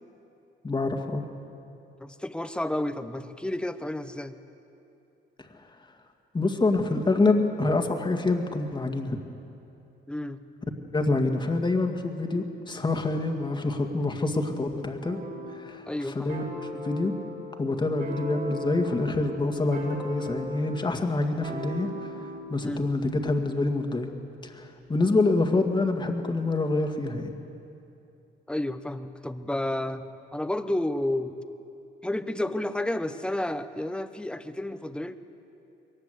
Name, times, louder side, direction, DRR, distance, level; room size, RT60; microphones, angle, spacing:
voice 1, 0.6-1.2 6.3-9.2 10.9-15.2 15.6-15.9 16.2-16.4 16.7-17.1 17.6-22.1 22.5-24.1 24.4-27.3, left 2 dB, 25° left, 4 dB, 1.9 m, -26 dB
voice 2, 2.0-4.4 10.1-10.4 15.9-16.4 22.6-22.9 28.5-30.1 30.3-31.4 32.0-35.2, left 1 dB, 5° left, 10 dB, 1.0 m, -31 dB
sound 1, 15.0-15.7 16.3-22.5, left 1 dB, 55° right, 5.8 m, -38 dB
22.0 x 19.0 x 8.2 m, 2.8 s
cardioid pair, 90°, 20 cm